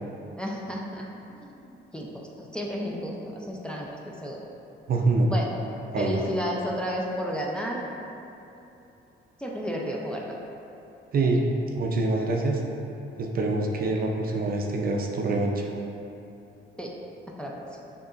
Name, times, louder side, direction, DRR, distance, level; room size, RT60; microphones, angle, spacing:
voice 1, 0.4-1.0 1.4-1.5 1.9-2.2 2.5-3.2 3.5-3.9 4.2-4.4 5.3-5.5 6.0-7.8 9.4-10.2 16.8-16.9 17.4-17.6, equal, 5° left, -3 dB, 0.5 m, -31 dB
voice 2, 4.9-5.3 5.9-6.2 11.1-11.4 11.7-12.6 13.2-15.7, right 2 dB, 50° right, 1 dB, 0.5 m, -25 dB
6.4 x 2.8 x 2.5 m, 2.9 s
cardioid pair, 90°, 20 cm